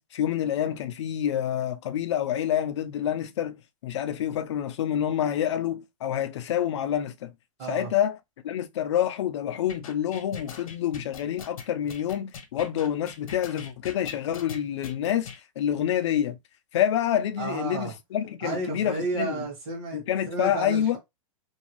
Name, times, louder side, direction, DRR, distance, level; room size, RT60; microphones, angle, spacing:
voice 1, 0.0-3.6 3.8-7.3 7.7-8.2 8.4-15.3 15.6-16.4 16.7-19.4 19.9-21.0, left 10 dB, 55° left, 0.4 m, -27 dB
voice 2, 7.6-7.9 17.4-17.9 18.4-21.0, right 3 dB, 30° right, 1.3 m, -32 dB
sound 1, 9.7-15.4, left 6 dB, 75° left, 0.9 m, -41 dB
2.6 x 2.2 x 3.0 m
hypercardioid pair, 165°, 18 cm